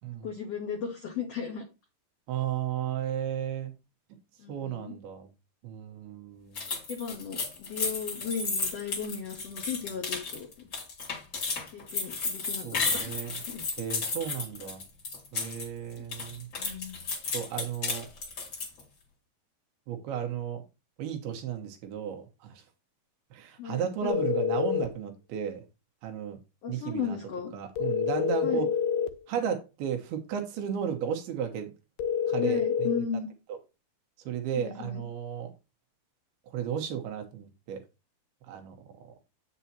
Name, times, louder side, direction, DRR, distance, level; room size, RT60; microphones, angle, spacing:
voice 1, 0.2-1.6 4.4-4.9 6.9-10.7 11.7-13.6 16.0-16.1 16.6-17.0 23.6-24.2 26.6-27.5 28.4-28.7 32.4-33.3 34.5-35.0, left 7 dB, 70° left, 1.5 m, -36 dB
voice 2, 2.3-3.7 4.5-5.3 5.6-6.7 12.6-13.4 13.8-14.8 15.3-16.5 17.3-18.1 19.9-20.6 21.0-22.6 23.3-25.7 26.0-26.4 26.7-27.2 27.5-28.7 29.3-31.7 32.3-32.9 34.3-35.5 36.5-37.8 38.5-39.2, right 8 dB, 90° right, 3.2 m, -34 dB
sound 1, 6.6-15.7 16.0-18.8, left 4 dB, 40° left, 2.0 m, -33 dB
sound 2, 24.1-24.9 27.8-29.2 32.0-33.0, left 7 dB, 90° left, 2.7 m, -27 dB
8.3 x 7.2 x 2.8 m
omnidirectional pair, 4.4 m